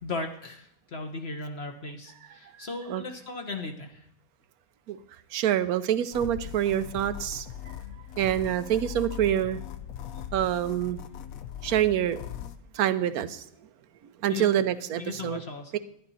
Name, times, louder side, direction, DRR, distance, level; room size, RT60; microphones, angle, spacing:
voice 1, 0.0-4.0 14.3-14.4 15.0-15.7, left 3 dB, 50° left, 4 dB, 1.2 m, -37 dB
voice 2, 2.6-3.0 4.9-5.0 5.3-7.5 8.2-9.6 10.3-11.0 11.6-12.2 12.7-13.5 14.2-15.4 15.7-15.8, right 11 dB, 85° right, 13 dB, 1.2 m, -26 dB
sound 1, 6.1-12.6, left 10 dB, 75° left, 1.1 m, -40 dB
12.0 x 10.5 x 4.1 m, 0.72 s
omnidirectional pair, 1.5 m